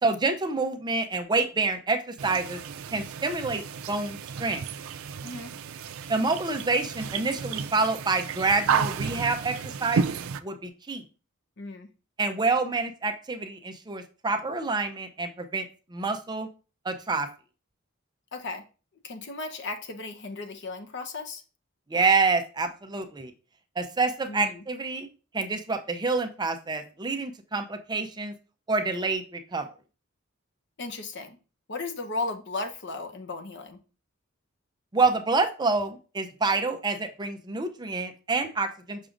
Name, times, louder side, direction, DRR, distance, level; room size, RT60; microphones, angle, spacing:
voice 1, 0.0-2.6 2.9-3.6 3.9-4.6 6.1-10.1 10.4-11.0 12.2-15.6 15.9-16.5 16.8-17.3 21.9-23.3 23.8-25.1 25.3-28.3 28.7-29.7 34.9-39.0, right 3 dB, 20° right, 8 dB, 0.5 m, -27 dB
sound 1, 2.2-10.4, right 6 dB, 85° right, 0.4 m, -32 dB
voice 2, 5.2-5.5 11.6-11.9 18.3-18.6 19.0-21.4 24.3-24.6 30.8-31.4 31.7-33.8, left 3 dB, 60° left, 5 dB, 0.9 m, -35 dB
6.2 x 5.9 x 2.5 m, 0.35 s
head